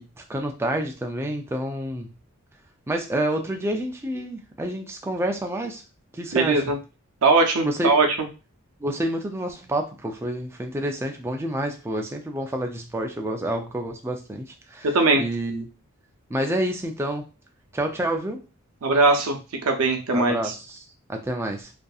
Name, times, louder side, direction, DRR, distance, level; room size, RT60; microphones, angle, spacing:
voice 1, 0.0-2.1 2.9-5.8 6.1-6.6 7.6-7.9 8.8-15.7 16.3-17.2 17.7-18.4 20.1-21.7, right 1 dB, 10° right, 3 dB, 0.3 m, -28 dB
voice 2, 6.3-6.8 7.2-8.1 14.9-15.2 18.8-19.4 19.6-20.5, right 3 dB, 70° right, 4 dB, 0.6 m, -20 dB
2.6 x 2.4 x 2.3 m, 0.31 s
head